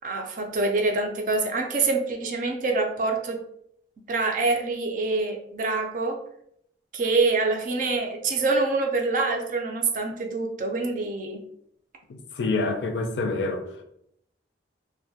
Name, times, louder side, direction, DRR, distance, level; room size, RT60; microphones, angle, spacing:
voice 1, 0.0-3.4 4.1-6.2 6.9-11.4, right 3 dB, 45° right, 0.4 m, -25 dB
voice 2, 12.1-13.8, left 3 dB, 70° left, 0.4 m, -27 dB
2.2 x 2.1 x 2.7 m
head